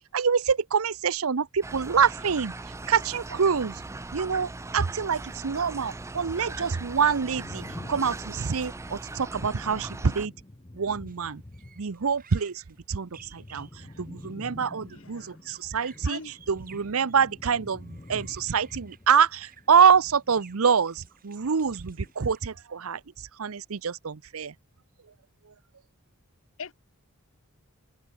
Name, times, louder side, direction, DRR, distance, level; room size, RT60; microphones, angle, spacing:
voice 1, 0.1-2.5 2.9-3.8 4.1-10.3 10.7-11.4 11.8-12.6 12.9-16.2 16.5-23.0 23.4-24.5, right 6 dB, 70° right, 0.7 m, -25 dB
sound 1, 1.6-10.3, right 2 dB, 15° right, 0.4 m, -39 dB
sound 2, 7.0-12.2 12.5-21.1 21.4-22.1, left 1 dB, 25° left, 0.8 m, -47 dB
sound 3, 11.1-11.2 11.5-17.3 17.8-22.6, right 8 dB, 40° right, 7.2 m, -55 dB
voice 2, 14.8-15.4 15.7-16.3 26.6-26.7, left 5 dB, 65° left, 1.0 m, -42 dB
head